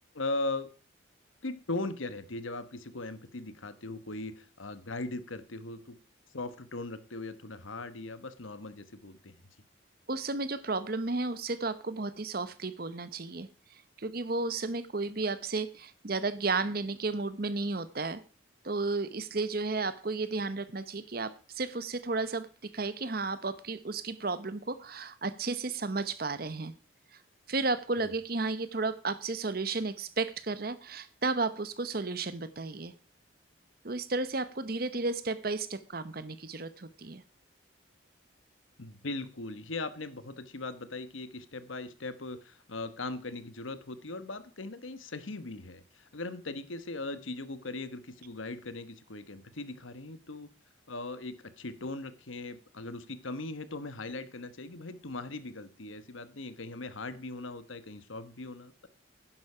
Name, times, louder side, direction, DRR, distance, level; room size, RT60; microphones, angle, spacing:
voice 1, 0.1-0.7 1.4-6.0 6.3-9.3 28.0-28.1 38.8-50.5 50.9-58.9, left 2 dB, 85° left, 12 dB, 1.2 m, -39 dB
voice 2, 10.1-13.5 14.0-18.2 18.6-22.5 22.7-26.7 27.5-32.9 33.8-37.2, right 3 dB, 50° right, 14 dB, 0.9 m, -33 dB
11.0 x 10.5 x 4.9 m, 0.37 s
head